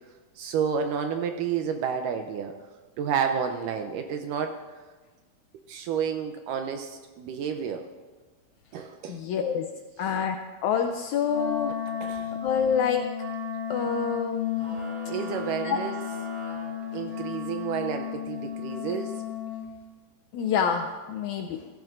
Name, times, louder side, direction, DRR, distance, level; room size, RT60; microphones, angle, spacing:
voice 1, 0.4-2.5 3.0-4.5 5.7-7.9 8.7-9.2 12.0-12.3 15.1-15.9 16.9-19.1, right 7 dB, 80° right, 5 dB, 2.1 m, -30 dB
voice 2, 9.1-9.7 10.0-10.4 10.6-11.7 12.4-13.1 13.7-14.8 15.6-15.8 20.3-21.7, left 7 dB, 85° left, 5 dB, 1.6 m, -27 dB
Wind instrument woodwind instrument, 11.3-19.7, left 8 dB, 50° right, 2.5 m, -34 dB
sound 1, 14.5-17.5, equal, 35° right, 5.6 m, -42 dB
16.0 x 15.0 x 2.6 m, 1.3 s
omnidirectional pair, 4.1 m